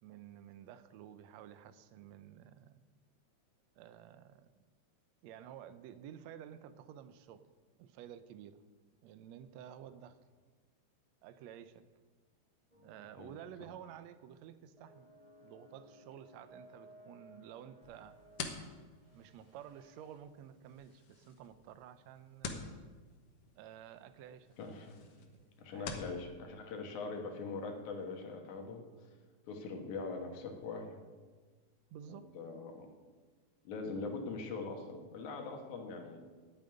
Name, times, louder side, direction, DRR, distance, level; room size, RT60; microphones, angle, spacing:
voice 1, 0.0-2.8 3.8-4.5 5.2-7.4 7.8-8.7 9.0-10.2 11.2-11.9 12.8-15.1 15.4-18.2 19.1-22.7 23.6-24.6 25.1-25.4 25.7-26.1 31.9-32.3 33.9-34.1, right 9 dB, 75° right, 12 dB, 1.8 m, -52 dB
sound 1, 12.7-13.5 13.8-14.0 14.8-20.2, right 1 dB, 15° right, 1.8 m, -60 dB
sound 2, 17.8-26.2, left 5 dB, 60° left, 1.8 m, -49 dB
voice 2, 24.6-25.1 25.6-28.8 29.5-31.0 32.1-32.9 33.6-36.2, left 4 dB, 80° left, 3 dB, 2.9 m, -42 dB
9.3 x 9.0 x 9.0 m, 1.4 s
omnidirectional pair, 3.4 m